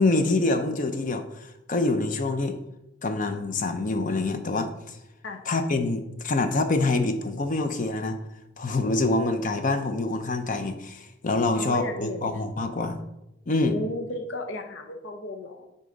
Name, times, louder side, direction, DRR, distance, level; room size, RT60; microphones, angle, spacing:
voice 1, 0.0-2.6 3.0-5.0 5.5-8.2 8.6-13.0 13.5-13.7, left 2 dB, 45° left, 7 dB, 0.6 m, -26 dB
voice 2, 11.5-12.2 13.6-15.7, left 1 dB, 80° left, 4 dB, 0.8 m, -34 dB
9.8 x 3.9 x 3.9 m, 0.90 s
head